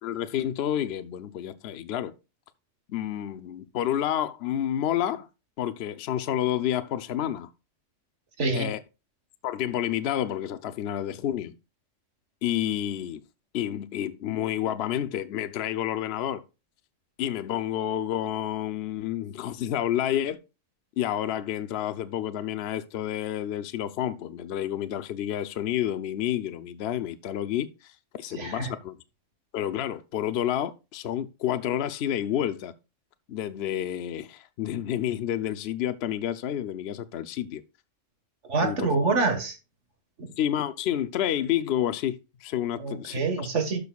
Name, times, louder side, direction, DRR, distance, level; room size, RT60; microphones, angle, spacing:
voice 1, 0.0-2.1 2.9-5.3 5.6-7.5 8.5-8.8 9.4-11.5 12.4-13.2 13.5-16.4 17.2-20.4 21.0-27.9 28.2-28.9 29.5-32.7 33.3-37.6 38.6-38.8 40.4-43.2, left 11 dB, 60° left, 0.8 m, -29 dB
voice 2, 8.4-8.7 28.3-28.7 38.5-39.6 40.2-40.3 42.8-43.8, right 3 dB, 70° right, 1.9 m, -26 dB
12.0 x 6.4 x 2.3 m
omnidirectional pair, 1.2 m